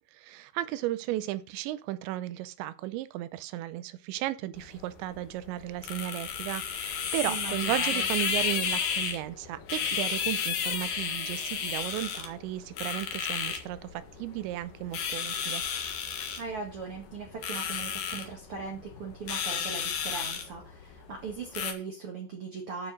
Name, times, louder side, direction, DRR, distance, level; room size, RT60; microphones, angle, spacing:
voice 1, 0.2-15.6, right 15 dB, 80° right, 2.8 m, -34 dB
sound 1, 4.5-21.7, left 7 dB, 60° left, 2.9 m, -33 dB
voice 2, 7.3-8.1 16.3-22.9, right 5 dB, 55° right, 1.5 m, -39 dB
9.6 x 6.5 x 6.3 m
omnidirectional pair, 5.4 m